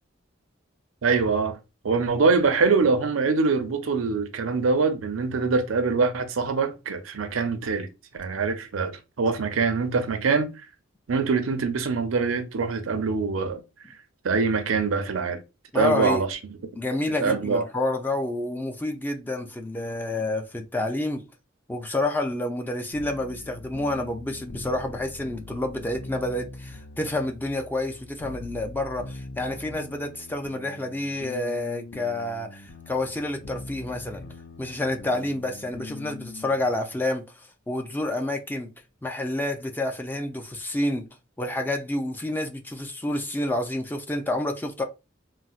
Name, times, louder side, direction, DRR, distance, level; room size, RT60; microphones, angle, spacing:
voice 1, 1.0-1.6 1.8-7.9 8.2-10.5 11.1-13.6 14.2-15.4 15.7-16.4 17.2-17.7, right 4 dB, 80° right, 0.5 m, -24 dB
voice 2, 15.7-16.2 16.8-21.2 21.7-34.2 34.6-37.2 37.7-38.7 39.0-41.1 41.4-44.8, left 1 dB, 10° left, 0.4 m, -29 dB
sound 1, 22.9-37.0, left 2 dB, 65° left, 0.5 m, -42 dB
4.0 x 2.0 x 2.3 m
head